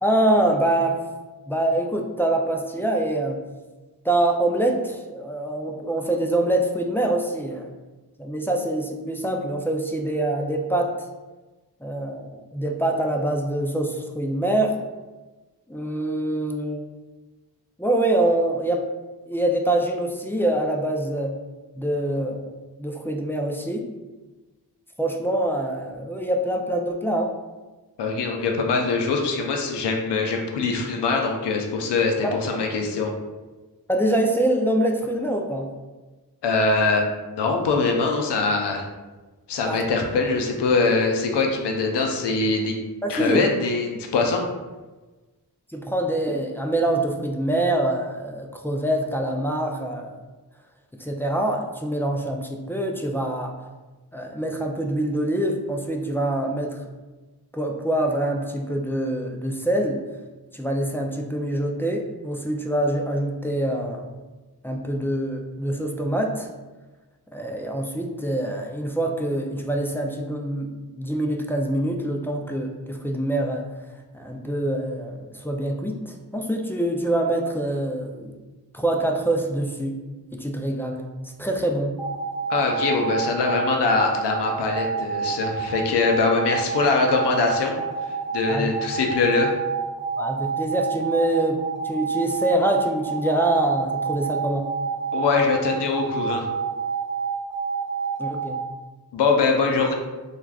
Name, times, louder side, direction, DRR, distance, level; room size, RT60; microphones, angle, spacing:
voice 1, 0.0-1.0 1.5-3.4 4.0-7.7 8.2-10.9 11.8-14.8 15.7-16.8 17.8-18.9 19.3-21.3 21.8-23.9 25.0-27.3 32.2-32.4 33.9-35.7 39.7-39.8 43.0-43.4 45.7-50.1 51.0-53.5 54.1-56.8 57.5-60.0 60.5-64.1 64.6-66.5 67.3-73.7 74.1-78.3 78.7-80.0 80.3-81.0 81.4-82.0 88.5-88.7 90.2-94.7 98.2-98.6, right 1 dB, 5° left, 1 dB, 0.3 m, -25 dB
voice 2, 28.0-33.1 36.4-38.9 39.5-42.8 43.1-44.5 82.5-87.8 88.3-89.5 95.1-96.5 99.1-99.9, left 4 dB, 85° left, 2 dB, 0.5 m, -23 dB
sound 1, 82.0-98.5, right 5 dB, 30° right, 1.0 m, -29 dB
3.3 x 2.4 x 2.3 m, 1.2 s
cardioid pair, 45°, 40 cm